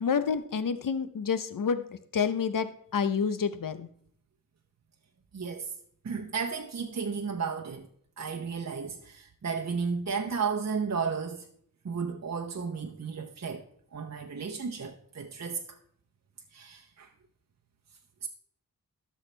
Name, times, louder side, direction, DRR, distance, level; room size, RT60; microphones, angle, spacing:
voice 1, 0.0-3.9, left 6 dB, 70° left, 0.7 m, -29 dB
voice 2, 5.3-5.7 6.0-7.9 8.2-11.5 11.8-13.6 13.9-15.6 16.5-17.1 18.2-18.3, right 5 dB, 50° right, 0.8 m, -33 dB
12.5 x 6.4 x 3.3 m
wide cardioid pair, 75°, 35 cm